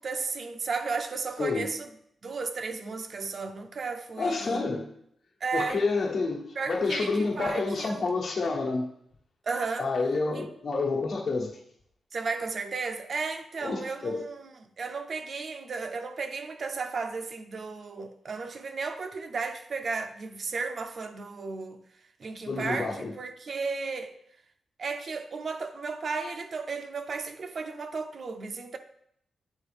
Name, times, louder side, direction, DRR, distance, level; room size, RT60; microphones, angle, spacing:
voice 1, 0.0-1.9 2.2-4.6 5.4-5.8 6.6-8.1 9.5-9.9 10.3-10.4 12.1-21.8 22.2-24.1 24.8-28.8, right 4 dB, 50° right, 0.5 m, -34 dB
voice 2, 4.2-4.9 5.5-8.9 9.8-11.5 13.6-14.3 22.5-23.1, left 3 dB, 60° left, 1.2 m, -29 dB
8.2 x 4.2 x 3.4 m
wide cardioid pair, 125°, 0 cm